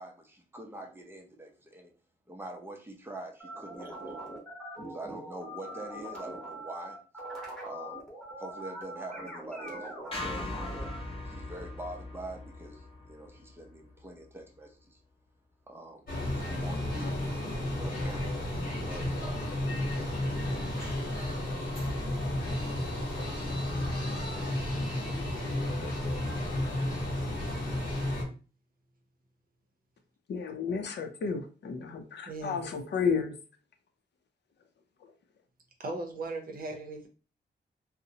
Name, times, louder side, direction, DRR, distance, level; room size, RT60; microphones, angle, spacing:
voice 1, 0.0-1.9 2.3-4.3 4.9-7.0 7.6-8.0 8.4-10.6 11.2-15.0 15.7-19.5 19.8-20.9, right 1 dB, 10° right, 2 dB, 0.5 m, -45 dB
sound 1, 3.4-11.0, right 1 dB, 5° left, 0.9 m, -42 dB
sound 2, 10.1-14.4, left 2 dB, 30° left, 0.7 m, -40 dB
sound 3, 16.1-28.2, left 1 dB, 55° left, 1.1 m, -32 dB
voice 2, 30.3-33.3, left 5 dB, 75° left, 6 dB, 0.5 m, -32 dB
voice 3, 32.3-32.6 35.8-37.1, right 2 dB, 55° right, 4 dB, 0.6 m, -37 dB
2.7 x 2.0 x 2.7 m, 0.35 s
wide cardioid pair, 160°, 18 cm